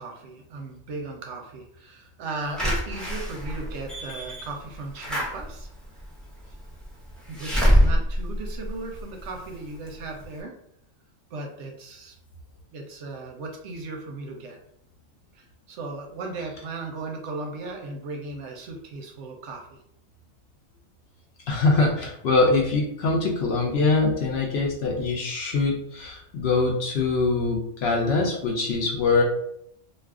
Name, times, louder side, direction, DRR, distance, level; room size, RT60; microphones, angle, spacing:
voice 1, 0.0-5.7 6.5-6.6 7.3-10.5 11.3-12.2 12.7-14.6 15.3-19.8, right 3 dB, 70° right, 2 dB, 0.8 m, -36 dB
Slam / Alarm, 2.6-9.4 9.9-10.0 10.2-10.3, equal, ahead, 0.4 m, -25 dB
voice 2, 21.5-29.2, left 3 dB, 60° left, -1 dB, 0.8 m, -23 dB
2.5 x 2.3 x 3.5 m, 0.71 s
omnidirectional pair, 1.4 m